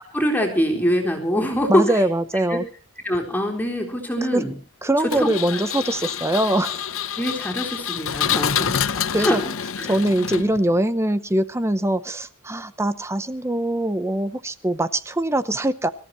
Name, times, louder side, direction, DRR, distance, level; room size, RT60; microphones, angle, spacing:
voice 1, 0.1-2.0 2.5-2.6 3.0-4.5 5.0-5.6 7.2-9.4 9.8-10.0, equal, 10° left, 1 dB, 3.8 m, -24 dB
voice 2, 1.7-2.6 4.3-4.5 4.8-6.9 9.1-9.4 9.8-15.9, right 1 dB, 15° right, 13 dB, 0.7 m, -22 dB
Engine, 5.1-10.8, left 8 dB, 65° left, 0.7 m, -27 dB
26.5 x 14.5 x 3.0 m, 0.35 s
head